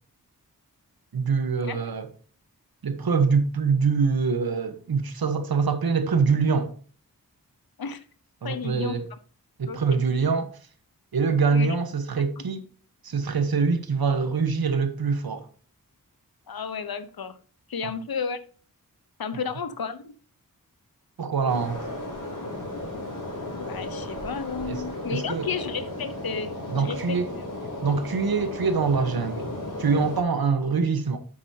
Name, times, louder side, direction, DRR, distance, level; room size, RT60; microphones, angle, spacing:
voice 1, 1.1-2.1 2.8-6.7 8.4-9.0 9.6-10.6 11.1-12.6 13.0-15.5 21.2-21.8 24.7-24.8 25.1-25.5 26.7-27.3 27.8-29.5 29.8-31.2, right 5 dB, 85° right, 1.1 m, -24 dB
voice 2, 8.4-9.0 9.7-10.0 11.5-11.7 12.4-12.5 16.5-17.4 17.7-18.4 19.2-20.1 23.6-27.6, left 6 dB, 85° left, 0.9 m, -33 dB
sound 1, 21.5-30.2, left 1 dB, 65° left, 4.5 m, -35 dB
8.8 x 8.0 x 2.8 m
wide cardioid pair, 80°, 36 cm